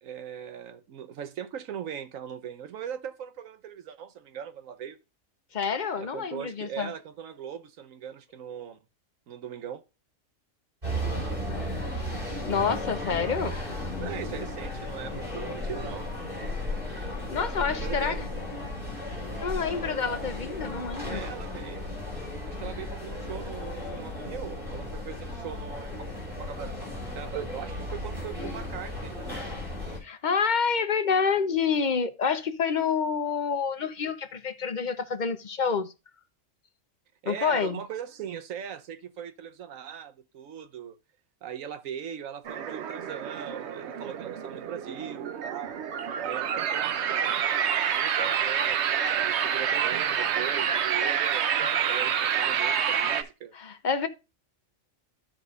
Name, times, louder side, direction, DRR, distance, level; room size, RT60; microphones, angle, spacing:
voice 1, 0.0-5.0 6.0-8.8 9.3-9.8 14.0-16.1 17.8-18.2 21.0-21.9 22.5-26.8 27.1-29.4 37.2-41.0 41.4-45.8 46.2-47.0 47.9-53.5, right 8 dB, 85° right, 1.2 m, -39 dB
voice 2, 5.5-6.9 12.5-13.6 17.3-18.3 19.4-21.2 30.0-35.9 37.3-37.8 53.5-54.1, left 6 dB, 45° left, 0.7 m, -28 dB
sound 1, 10.8-30.0, left 1 dB, 40° right, 3.7 m, -35 dB
sound 2, 42.4-53.2, right 8 dB, 65° right, 0.9 m, -28 dB
13.0 x 5.0 x 2.4 m
omnidirectional pair, 1.4 m